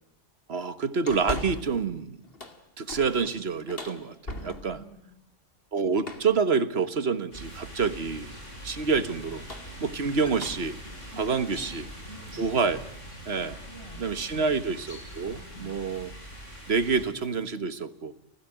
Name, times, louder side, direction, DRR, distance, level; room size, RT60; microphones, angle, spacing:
voice 1, 0.5-2.2 2.8-4.8 5.7-8.3 8.6-9.4 9.8-10.7 11.2-11.8 12.3-12.8 13.3-13.5 14.0-16.1 16.7-18.1, right 5 dB, 55° right, 13 dB, 1.6 m, -27 dB
sound 1, 1.1-1.9 2.2-4.9 6.0-6.4 7.5-7.9 9.2-12.6 13.1-13.2 14.7-15.0 15.3-15.5 15.9-16.1 16.4-17.5, left 2 dB, 50° left, 2.4 m, -42 dB
voice 2, 4.3-5.1 11.1-12.5 13.4-14.6 15.3-15.8, right 1 dB, 20° left, -1 dB, 6.4 m, -49 dB
sound 2, 7.3-17.1, equal, 80° left, 7.6 m, -43 dB
29.5 x 15.5 x 9.0 m, 0.80 s
omnidirectional pair, 1.3 m